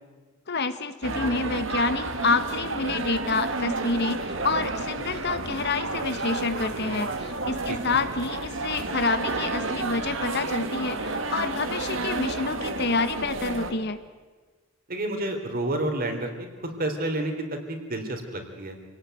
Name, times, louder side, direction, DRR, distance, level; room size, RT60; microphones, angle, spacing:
voice 1, 0.5-14.0, left 3 dB, 55° left, 11 dB, 1.3 m, -28 dB
sound 1, 1.0-13.7, right 3 dB, 65° right, 2.0 m, -31 dB
voice 2, 14.9-18.8, right 1 dB, 45° right, 4 dB, 3.7 m, -30 dB
27.5 x 18.5 x 9.3 m, 1.4 s
head